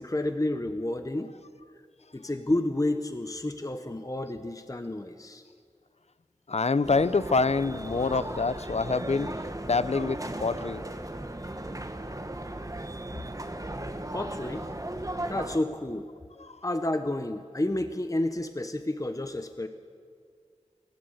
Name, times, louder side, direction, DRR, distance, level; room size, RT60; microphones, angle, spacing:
voice 1, 0.0-1.3 2.1-5.4 14.1-14.7 15.3-16.1 16.6-19.7, left 1 dB, 25° left, 8 dB, 0.9 m, -30 dB
voice 2, 6.5-9.3 9.6-10.8 16.5-16.6, left 4 dB, 60° left, 16 dB, 0.6 m, -26 dB
sound 1, 6.8-15.6, right 1 dB, 25° right, 1.4 m, -36 dB
29.5 x 12.5 x 8.0 m, 2.2 s
wide cardioid pair, 45°, 12 cm